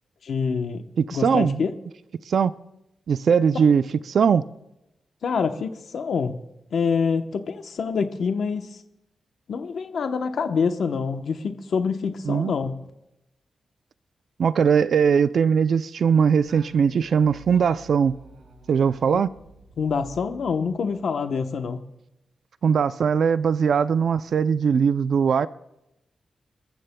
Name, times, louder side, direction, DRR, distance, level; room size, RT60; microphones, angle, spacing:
voice 1, 0.2-0.8 1.1-1.7 3.5-3.6 5.2-6.4 6.7-8.7 9.5-12.7 19.1-19.2 19.8-21.8, left 5 dB, 70° left, 0.9 m, -26 dB
voice 2, 1.0-1.6 2.3-2.5 3.1-4.4 12.2-12.5 14.4-18.1 18.7-19.3 22.6-25.5, right 6 dB, 65° right, 0.4 m, -20 dB
Singing, 16.4-21.2, right 2 dB, 85° right, 4.2 m, -49 dB
28.0 x 14.0 x 2.2 m
wide cardioid pair, 125°, 0 cm